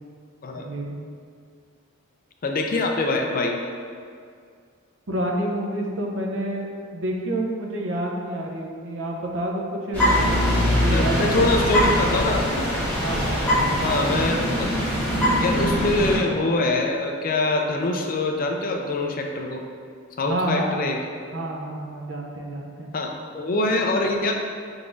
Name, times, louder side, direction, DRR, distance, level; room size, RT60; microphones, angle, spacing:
voice 1, 0.5-1.0 5.1-11.7 13.0-14.2 20.2-20.8 21.3-22.9, right 1 dB, 65° right, -1 dB, 0.6 m, -29 dB
voice 2, 2.4-3.6 10.9-12.8 13.8-14.8 15.4-19.6 20.2-21.0 22.9-24.3, left 2 dB, 40° left, 2 dB, 0.4 m, -24 dB
sound 1, 9.9-16.2, equal, 10° left, 1.2 m, -22 dB
4.6 x 3.9 x 2.5 m, 2.2 s
head